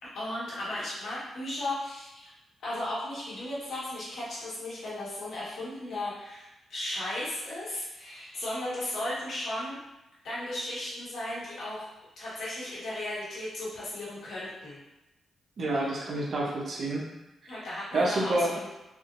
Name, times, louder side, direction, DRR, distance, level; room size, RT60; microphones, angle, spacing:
voice 1, 0.0-2.3 2.6-9.8 10.2-11.9 12.2-14.8 15.7-15.9 17.5-18.7, left 1 dB, 75° left, -8 dB, 1.4 m, -35 dB
voice 2, 15.6-17.1 17.4-17.6 17.9-18.5, right 1 dB, 55° right, -2 dB, 0.8 m, -28 dB
3.6 x 2.6 x 2.5 m, 0.96 s
cardioid pair, 85°, 0 cm